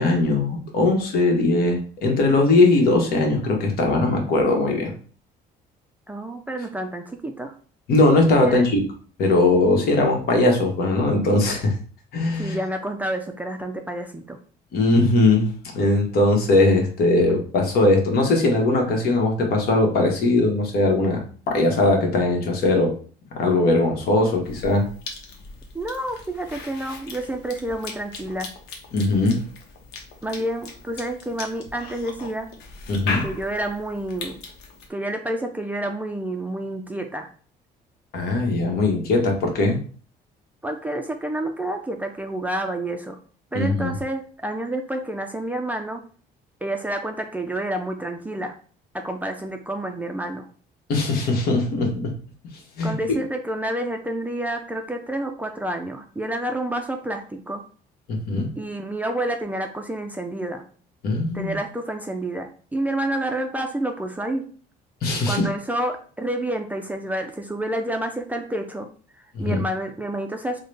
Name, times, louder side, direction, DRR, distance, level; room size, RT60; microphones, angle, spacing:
voice 1, 0.0-4.9 7.9-8.8 9.2-11.7 12.1-12.6 14.7-21.2 21.5-22.9 23.3-24.9 28.9-29.4 32.9-33.2 38.1-39.8 43.5-43.9 50.9-52.1 52.8-53.2 58.1-58.5 61.0-61.6 65.0-65.5 69.3-69.6, left 2 dB, 65° left, 2 dB, 1.1 m, -20 dB
voice 2, 6.1-7.6 8.5-8.6 12.4-14.4 25.7-28.5 30.2-32.5 33.2-34.4 34.9-37.3 40.6-43.2 43.5-46.0 46.6-48.6 48.9-50.5 52.8-57.6 58.6-60.6 61.3-64.4 65.3-68.9 69.2-70.6, right 1 dB, 10° right, 4 dB, 0.4 m, -29 dB
Cough / Chewing mastication, 24.4-34.9, left 4 dB, 80° left, 0.8 m, -38 dB
3.7 x 2.1 x 3.3 m, 0.42 s
cardioid pair, 110°, 17 cm